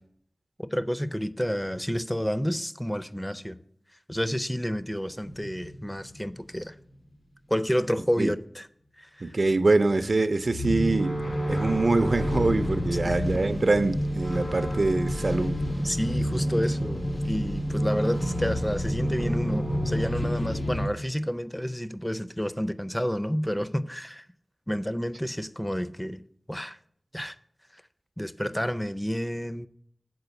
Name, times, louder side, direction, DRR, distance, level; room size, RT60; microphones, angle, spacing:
voice 1, 0.6-3.6 4.1-6.8 7.5-8.7 9.0-9.4 12.9-13.2 15.8-24.3 24.7-26.2 26.5-26.8 27.1-27.3 27.7-27.8 28.2-29.7, equal, 10° left, 0.4 m, -30 dB
sound 1, 5.3-6.6 10.5-20.9, equal, 65° left, 1.9 m, -29 dB
voice 2, 9.2-11.2 11.5-15.6, right 3 dB, 65° right, 0.4 m, -24 dB
7.9 x 4.4 x 6.9 m
wide cardioid pair, 70°, 0 cm